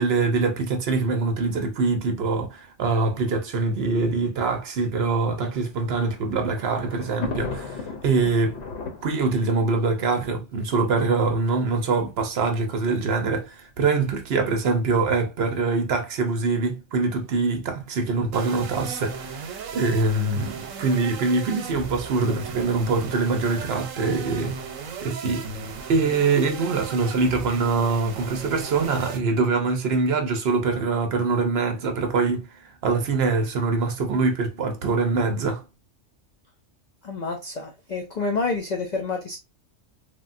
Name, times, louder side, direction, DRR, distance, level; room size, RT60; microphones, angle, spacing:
voice 1, 0.0-8.6 9.0-24.6 25.0-35.6, right 3 dB, 60° right, 0.8 m, -24 dB
Thunder, 5.8-11.1 11.9-12.0 12.2-12.3 13.4-13.7, left 4 dB, 65° left, 0.9 m, -36 dB
sound 1, 18.3-29.2, right 5 dB, 90° right, 1.0 m, -36 dB
voice 2, 37.0-39.4, left 3 dB, 80° left, 0.3 m, -28 dB
3.5 x 2.2 x 2.4 m
omnidirectional pair, 1.3 m